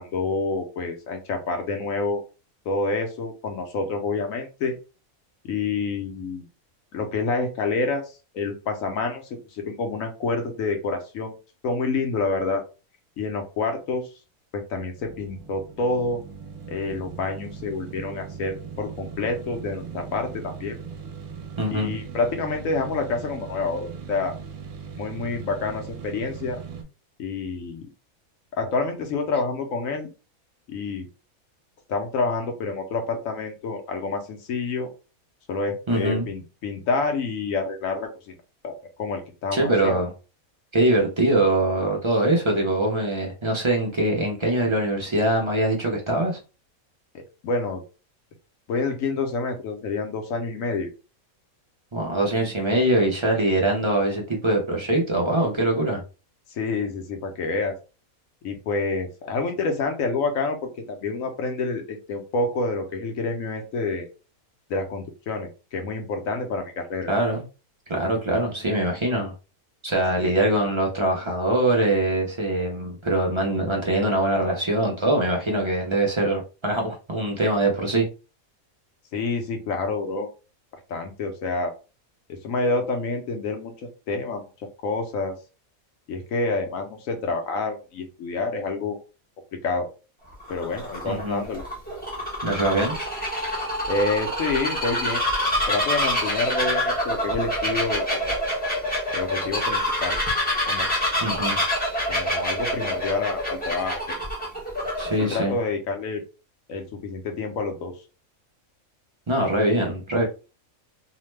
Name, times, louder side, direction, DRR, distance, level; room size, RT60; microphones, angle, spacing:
voice 1, 0.0-2.2 2.7-4.7 5.4-6.4 6.9-8.0 8.3-9.2 9.5-11.3 11.6-12.6 13.2-14.1 14.5-16.2 16.7-20.8 21.7-24.3 25.0-26.6 27.2-27.9 28.5-30.1 30.7-31.1 31.9-34.9 35.5-38.3 38.6-40.0 47.4-47.8 48.7-50.9 56.5-57.7 58.4-60.6 60.9-64.1 64.7-67.1 70.2-70.3 79.1-80.3 80.9-81.7 82.3-85.3 86.1-89.0 89.5-89.9 90.5-91.6 93.9-95.2 95.7-98.4 99.1-100.2 100.7-100.9 102.1-104.2 105.3-106.2 106.7-107.9, left 3 dB, 75° left, 4 dB, 1.0 m, -28 dB
sound 1, 15.0-26.8, right 6 dB, 65° right, 1.0 m, -39 dB
voice 2, 21.6-22.0 35.9-36.3 39.5-40.1 40.7-46.4 51.9-56.0 67.1-67.4 67.9-69.3 69.8-78.1 91.1-91.4 92.4-93.0 101.2-101.6 105.0-105.5 109.3-110.2, right 1 dB, 45° right, -1 dB, 0.3 m, -23 dB
Bird vocalization bird call bird song, 90.3-105.4, equal, 10° left, 0.7 m, -26 dB
2.8 x 2.1 x 3.1 m, 0.32 s
omnidirectional pair, 1.5 m